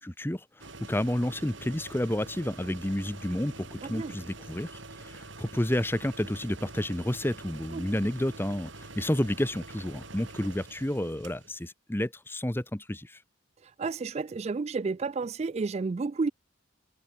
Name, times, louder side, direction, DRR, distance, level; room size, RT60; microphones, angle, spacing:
voice 1, 0.0-13.2, left 1 dB, 10° left, 0.8 m, -30 dB
sound 1, 0.6-11.7, right 2 dB, 60° right, 5.7 m, -46 dB
voice 2, 3.8-4.2 7.7-7.9 13.6-16.3, right 4 dB, 30° right, 0.3 m, -31 dB
head